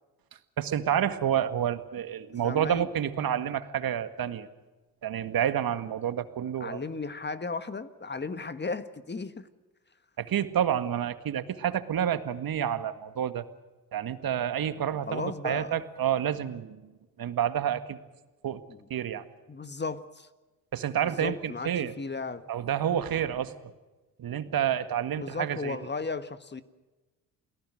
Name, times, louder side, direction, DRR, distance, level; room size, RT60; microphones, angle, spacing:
voice 1, 0.6-4.5 5.0-6.8 10.2-13.4 13.9-16.9 17.2-18.0 18.4-18.6 18.9-19.2 20.7-21.9 22.5-23.5 24.2-25.8, right 10 dB, 55° right, 11 dB, 1.9 m, -29 dB
voice 2, 2.3-2.9 6.6-9.5 15.1-15.8 18.7-18.9 19.5-20.3 21.0-22.5 25.2-26.6, left 4 dB, 25° left, 12 dB, 1.7 m, -35 dB
28.5 x 18.5 x 6.5 m, 1.2 s
hypercardioid pair, 55°, 43 cm